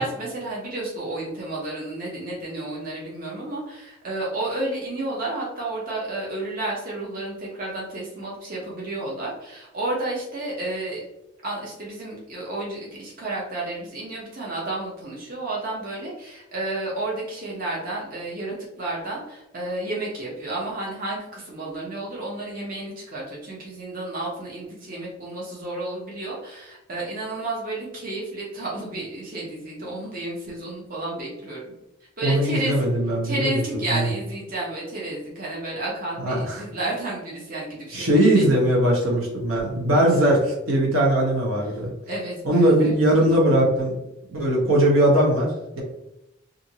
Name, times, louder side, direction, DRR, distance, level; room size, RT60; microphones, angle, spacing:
voice 1, 0.0-11.0 11.4-31.7 32.2-32.8 33.2-38.4 39.9-40.0 41.7-41.8 42.1-43.3, right 2 dB, 45° right, -5 dB, 0.7 m, -31 dB
voice 2, 32.2-33.6 33.9-34.1 36.2-36.6 37.9-41.9 42.4-44.0 44.3-45.8, right 1 dB, 75° right, -2 dB, 0.9 m, -20 dB
2.5 x 2.5 x 2.8 m, 0.89 s
head